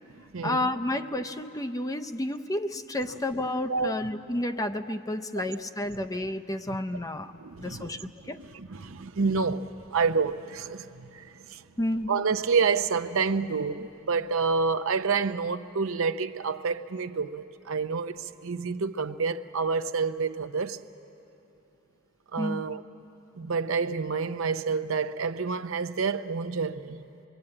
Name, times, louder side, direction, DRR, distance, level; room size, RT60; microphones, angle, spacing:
voice 1, 0.4-7.3 7.6-8.4 11.8-12.1 22.4-22.6, left 1 dB, 15° left, 0.5 m, -31 dB
voice 2, 7.4-8.1 8.4-11.6 12.1-20.8 22.3-22.8 23.4-27.0, right 5 dB, 65° right, 0.7 m, -28 dB
24.5 x 22.5 x 8.8 m
head